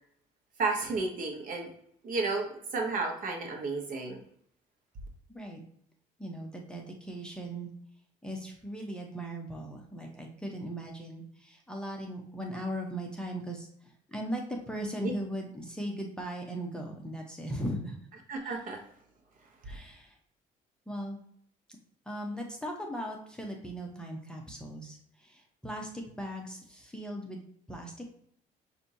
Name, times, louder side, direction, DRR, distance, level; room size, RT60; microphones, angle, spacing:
voice 1, 0.6-1.7 2.0-4.2 15.0-15.1 18.3-18.8, right 3 dB, 55° right, 2 dB, 1.1 m, -32 dB
voice 2, 5.3-5.6 6.2-7.7 8.2-18.0 18.4-18.6 19.6-20.2 20.9-21.2 22.1-27.4 27.7-28.1, right 1 dB, 5° left, 0 dB, 0.8 m, -38 dB
6.0 x 2.7 x 2.7 m, 0.65 s
cardioid pair, 110°, 17 cm